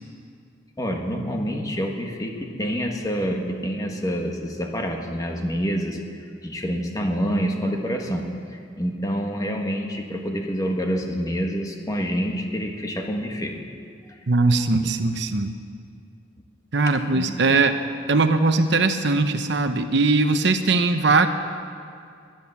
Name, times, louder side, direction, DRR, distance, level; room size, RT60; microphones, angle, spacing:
voice 1, 0.8-6.0 6.4-8.2 8.5-13.5 14.8-14.9 17.1-17.3, equal, 20° left, 2 dB, 1.5 m, -27 dB
voice 2, 14.3-15.5 16.7-17.7 18.1-21.3, right 3 dB, 65° right, 8 dB, 0.9 m, -20 dB
19.0 x 10.5 x 7.2 m, 2.3 s
head